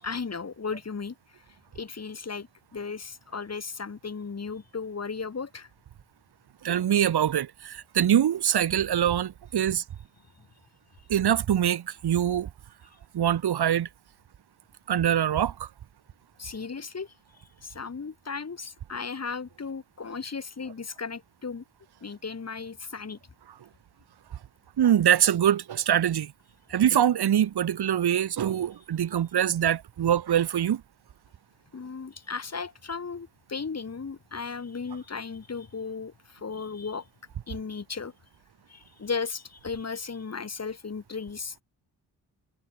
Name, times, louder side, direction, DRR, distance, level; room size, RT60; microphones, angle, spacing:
voice 1, 0.0-1.4 1.7-5.7 16.4-17.1 17.6-21.6 22.0-23.2 31.7-37.1 37.5-38.1 38.7-41.6, left 5 dB, 40° left, 6.3 m, -36 dB
voice 2, 6.6-9.8 11.1-12.5 13.1-13.9 14.9-15.7 24.8-26.3 26.7-30.8, right 10 dB, 75° right, 2.1 m, -24 dB
cardioid pair, 90°, 39 cm